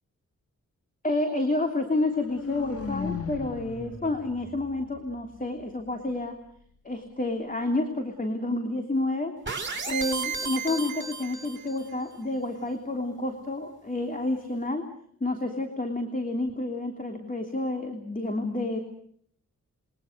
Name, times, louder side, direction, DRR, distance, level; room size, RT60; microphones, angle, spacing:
voice 1, 1.0-6.4 6.8-9.3 9.9-14.8 15.2-18.8, left 2 dB, 25° left, 4 dB, 3.2 m, -29 dB
sound 1, 1.9-5.9, left 5 dB, 50° left, 1.8 m, -38 dB
sound 2, 9.5-11.9, right 5 dB, 35° right, 4.3 m, -33 dB
28.0 x 23.0 x 6.7 m, 0.63 s
cardioid pair, 75°, 31 cm